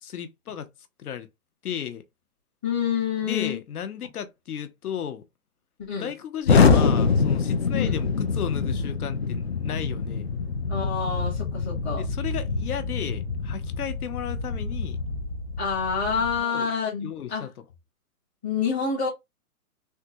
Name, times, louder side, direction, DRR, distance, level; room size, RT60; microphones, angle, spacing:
voice 1, 0.0-0.7 1.0-1.3 1.6-2.0 3.2-5.2 6.0-10.3 11.9-15.0 16.1-16.7 17.0-17.6, left 9 dB, 75° left, 0.9 m, -34 dB
voice 2, 2.6-3.6 5.8-6.1 7.7-7.9 10.7-12.0 15.6-17.5 18.4-19.1, left 6 dB, 10° left, 0.8 m, -27 dB
Explosion, 6.4-16.4, left 5 dB, 45° left, 0.4 m, -25 dB
3.6 x 2.3 x 2.7 m
hypercardioid pair, 175°, 45 cm